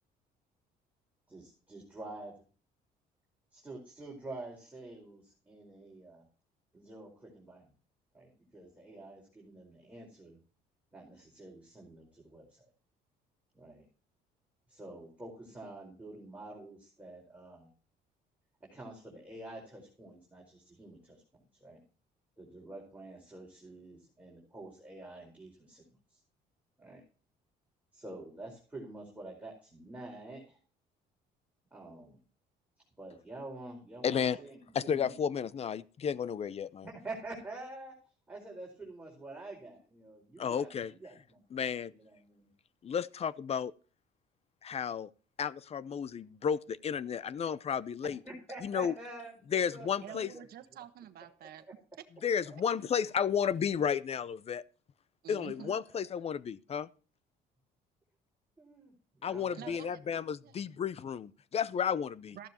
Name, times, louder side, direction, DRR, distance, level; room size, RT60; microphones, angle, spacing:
voice 1, 1.3-2.4 3.5-6.3 6.7-7.7 8.1-10.4 10.9-12.6 13.5-13.8 14.7-17.7 18.6-21.8 22.4-26.2 26.8-27.0 27.9-30.6 31.7-32.2 33.0-35.2 36.8-38.0 38.3-42.5 48.0-50.4 51.4-51.7 52.4-52.8 55.9-56.1 58.6-60.1, right 2 dB, 10° right, 4.7 m, -48 dB
voice 2, 34.0-34.4 34.7-36.9 40.4-40.9 41.5-41.9 42.8-43.7 44.6-45.1 45.4-48.2 48.6-48.9 49.5-50.3 52.2-54.6 55.3-56.9 59.2-62.4, left 7 dB, 35° left, 0.6 m, -32 dB
voice 3, 50.0-51.6 55.2-55.8 59.5-60.0 60.4-60.5 62.3-62.5, right 10 dB, 65° right, 1.2 m, -48 dB
14.0 x 12.0 x 2.9 m
cardioid pair, 110°, 17 cm